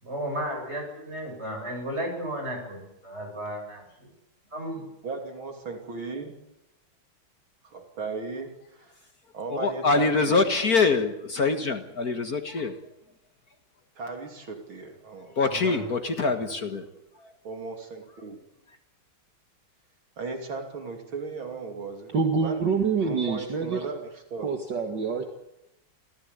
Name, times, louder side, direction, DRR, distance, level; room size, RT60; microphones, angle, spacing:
voice 1, 0.0-4.1 4.5-4.9 15.5-15.8, equal, 30° right, 2 dB, 8.1 m, -34 dB
voice 2, 5.0-6.3 7.6-9.0 9.3-10.1 14.0-15.4 17.4-18.4 20.2-22.6 23.0-24.5, right 4 dB, 75° right, 4 dB, 3.7 m, -36 dB
voice 3, 9.5-12.8 15.2-16.9 17.1-17.4 18.3-18.4 18.7-18.8, left 4 dB, 50° left, 7 dB, 2.1 m, -25 dB
voice 4, 22.1-23.9 24.4-25.2, right 5 dB, 60° right, 4 dB, 2.7 m, -26 dB
27.0 x 16.5 x 9.8 m, 0.88 s
omnidirectional pair, 2.2 m